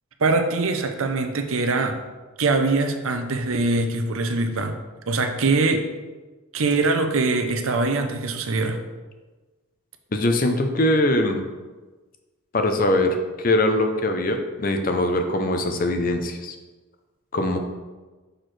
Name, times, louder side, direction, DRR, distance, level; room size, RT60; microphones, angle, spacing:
voice 1, 0.2-2.0 2.4-4.8 5.1-5.9 6.5-8.8, right 3 dB, 75° right, 6 dB, 0.7 m, -23 dB
voice 2, 10.1-11.4 12.5-16.6 17.3-17.6, left 1 dB, 40° left, 5 dB, 0.6 m, -22 dB
6.3 x 6.1 x 3.2 m, 1.3 s
head